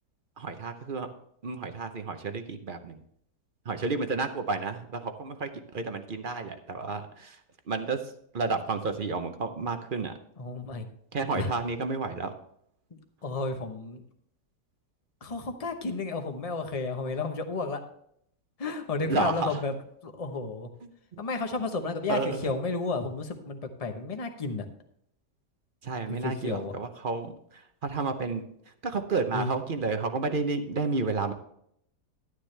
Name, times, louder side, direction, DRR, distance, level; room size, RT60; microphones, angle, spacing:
voice 1, 0.4-1.1 1.4-3.0 3.7-7.4 7.7-10.1 11.1-12.3 19.0-19.6 20.8-21.2 22.1-22.6 25.8-28.4 28.8-31.3, right 4 dB, 45° right, 8 dB, 0.7 m, -31 dB
voice 2, 10.4-10.9 11.3-11.5 13.2-14.0 15.2-17.8 18.6-19.7 20.0-20.7 21.2-24.7 26.2-26.7 29.3-29.5, left 3 dB, 30° left, 5 dB, 0.9 m, -32 dB
11.5 x 9.7 x 3.3 m, 0.70 s
omnidirectional pair, 1.7 m